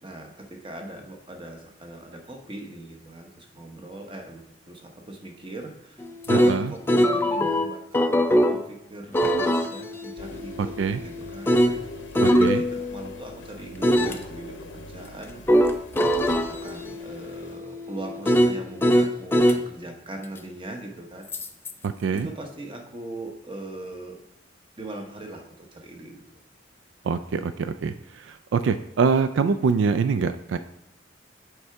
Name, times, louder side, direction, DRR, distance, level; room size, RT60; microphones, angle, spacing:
voice 1, 0.0-11.6 12.2-15.4 16.1-21.3 22.1-24.2 24.8-26.2, right 1 dB, 30° right, 2 dB, 0.9 m, -40 dB
sound 1, 6.0-8.6 9.1-13.2 13.8-14.2 15.5-19.6 21.3-21.7, equal, 10° left, 0.3 m, -22 dB
voice 2, 6.3-6.7 10.8-11.0 12.2-12.6 21.8-22.3 27.0-30.6, right 5 dB, 80° right, 11 dB, 0.3 m, -24 dB
sound 2, 10.2-17.5, left 2 dB, 80° left, 0.7 m, -43 dB
7.9 x 4.7 x 3.4 m, 0.81 s
head